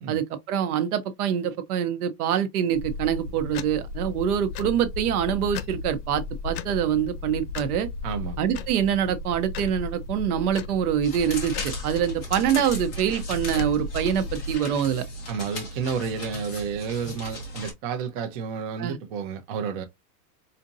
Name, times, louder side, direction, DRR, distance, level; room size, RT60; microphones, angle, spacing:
voice 1, 0.1-7.9 8.4-15.0 18.8-19.0, right 9 dB, 65° right, 0.9 m, -25 dB
sound 1, 2.7-14.5, left 3 dB, 75° left, 0.8 m, -35 dB
voice 2, 8.0-8.4 15.3-19.8, right 6 dB, 35° right, 0.6 m, -31 dB
sound 2, 11.0-17.7, left 1 dB, 15° left, 0.3 m, -37 dB
4.3 x 2.6 x 2.6 m
supercardioid pair, 165°, 47 cm